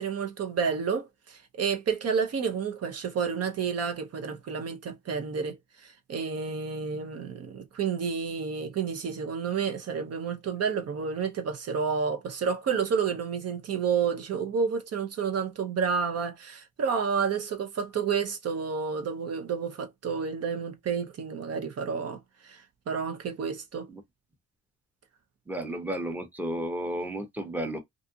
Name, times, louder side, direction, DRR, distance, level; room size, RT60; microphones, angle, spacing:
voice 1, 0.0-5.6 5.8-22.2 22.4-23.9, right 6 dB, 55° right, 0.8 m, -30 dB
voice 2, 25.5-27.8, right 1 dB, 5° right, 0.8 m, -33 dB
2.6 x 2.4 x 2.7 m
cardioid pair, 90°, 30 cm